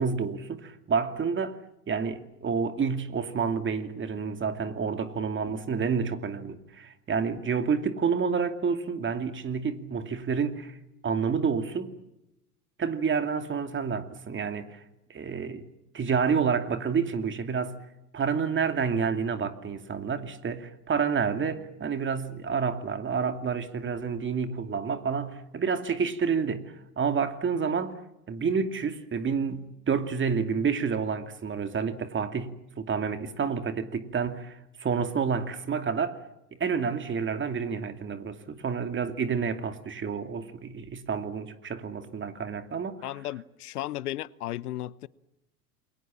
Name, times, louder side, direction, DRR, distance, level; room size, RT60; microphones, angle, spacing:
voice 1, 0.0-1.6 1.9-10.8 11.0-11.9 12.8-14.8 15.1-15.6 15.9-17.8 18.1-27.9 28.3-36.2 36.5-43.1, right 6 dB, 25° right, 2.6 m, -29 dB
voice 2, 43.0-45.1, left 14 dB, 75° left, 1.0 m, -35 dB
28.5 x 22.5 x 7.4 m
hypercardioid pair, 90°, 46 cm